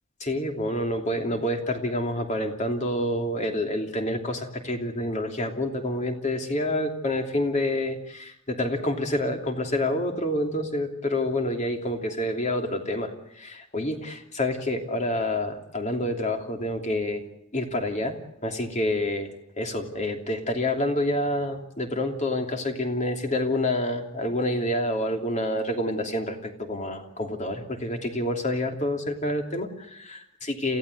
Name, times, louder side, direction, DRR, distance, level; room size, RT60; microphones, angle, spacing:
voice 1, 0.2-17.2 17.5-18.2 18.4-19.3 19.6-30.2 30.5-30.8, left 1 dB, 35° left, 4 dB, 3.0 m, -28 dB
27.5 x 16.0 x 8.0 m, 0.77 s
head